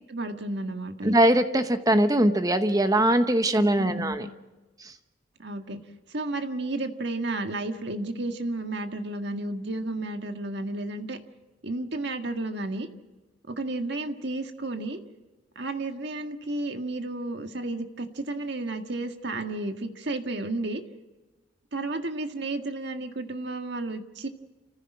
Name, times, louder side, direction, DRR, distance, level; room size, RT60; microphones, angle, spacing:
voice 1, 0.1-1.1 3.6-4.2 5.4-5.8 6.1-11.2 11.6-12.9 13.5-15.0 15.6-20.8 21.7-24.3, right 2 dB, 60° right, 5 dB, 1.7 m, -32 dB
voice 2, 1.0-4.3 4.8-4.9, right 1 dB, 20° right, 9 dB, 0.9 m, -22 dB
29.5 x 15.0 x 6.1 m, 1.1 s
head